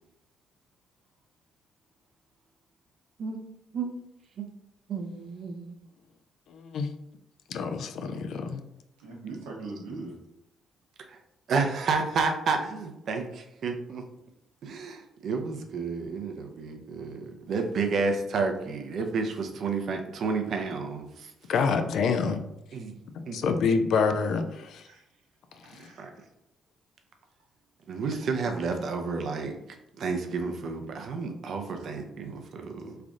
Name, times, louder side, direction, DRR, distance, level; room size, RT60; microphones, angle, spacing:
voice 1, 4.9-5.8 11.1-11.2 11.5-14.1 14.6-21.3 22.7-23.0 23.3-23.4 26.0-26.1 27.9-29.6 30.0-33.0, right 4 dB, 65° right, 5 dB, 0.6 m, -31 dB
voice 2, 6.5-6.9 7.5-8.6 21.5-22.4 23.3-24.8 25.7-25.9, left 5 dB, 70° left, 7 dB, 0.4 m, -27 dB
voice 3, 9.0-10.2 24.9-25.0 25.6-26.0 31.8-32.3, right 3 dB, 90° right, -2 dB, 0.9 m, -41 dB
3.3 x 2.5 x 3.6 m, 0.85 s
supercardioid pair, 55°, 0 cm